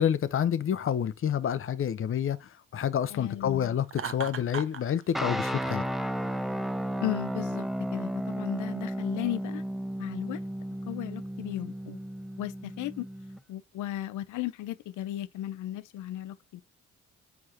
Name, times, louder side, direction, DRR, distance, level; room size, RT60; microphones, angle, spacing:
voice 1, 0.0-5.8, left 9 dB, 45° left, 0.7 m, -28 dB
voice 2, 3.1-3.7 7.0-7.7 7.9-9.6 10.0-10.4 10.9-12.0 12.4-13.1 13.5-16.6, left 14 dB, 80° left, 0.6 m, -35 dB
Laughter, 3.9-4.8, right 7 dB, 45° right, 0.7 m, -36 dB
sound 1, 5.1-13.4, equal, ahead, 0.4 m, -33 dB
4.9 x 4.6 x 4.1 m
cardioid pair, 90°, 30 cm